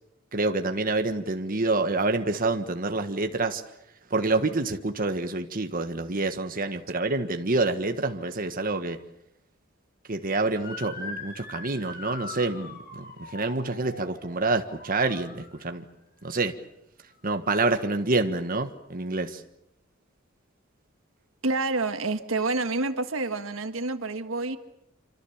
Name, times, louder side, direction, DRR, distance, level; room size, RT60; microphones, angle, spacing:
voice 1, 0.3-3.6 4.1-9.0 10.1-12.8 13.2-15.8 16.2-16.5 17.2-19.4, right 3 dB, 45° right, 7 dB, 1.5 m, -27 dB
Motor vehicle (road) / Siren, 10.5-15.8, left 3 dB, 50° left, 5.6 m, -42 dB
voice 2, 21.4-24.6, right 3 dB, 70° right, 9 dB, 1.6 m, -28 dB
27.5 x 25.5 x 7.3 m, 0.83 s
head